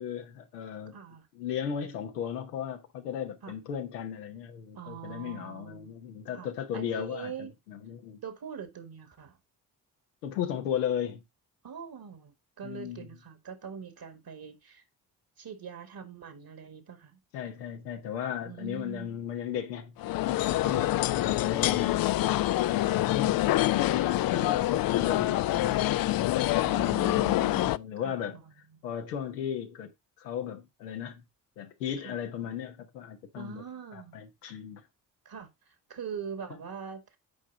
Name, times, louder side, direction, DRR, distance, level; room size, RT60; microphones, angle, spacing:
voice 1, 0.0-1.0 1.3-8.2 10.2-11.2 12.6-13.1 17.3-20.0 20.2-22.1 22.6-27.1 27.7-28.4 28.8-29.9 30.2-31.2 31.6-33.6 33.9-34.8, left 9 dB, 90° left, 1.0 m, -36 dB
voice 2, 0.9-1.3 3.4-3.6 4.8-5.9 6.3-7.5 8.2-9.4 11.6-14.8 15.4-17.2 18.4-19.1 20.6-20.8 26.6-28.4 28.7-28.8 32.0-32.2 33.3-34.2 35.3-35.5 35.9-37.2, right 7 dB, 50° right, 2.0 m, -43 dB
sound 1, 20.0-27.8, left 15 dB, 50° left, 0.4 m, -26 dB
8.5 x 4.9 x 3.9 m
hypercardioid pair, 40°, 46 cm